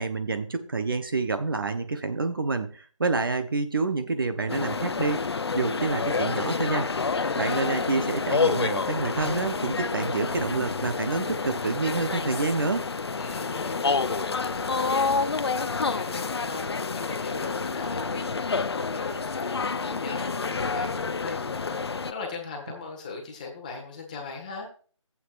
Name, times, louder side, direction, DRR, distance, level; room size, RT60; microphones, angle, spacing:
voice 1, 0.0-6.9 7.4-12.9, right 3 dB, 45° right, 8 dB, 0.8 m, -28 dB
sound 1, 4.5-22.1, left 4 dB, 50° left, 0.5 m, -28 dB
voice 2, 7.1-7.9 13.1-21.8 22.1-24.7, left 4 dB, 15° left, 1 dB, 1.4 m, -40 dB
14.5 x 8.3 x 2.5 m, 0.40 s
figure-of-eight pair, 170°, 17 cm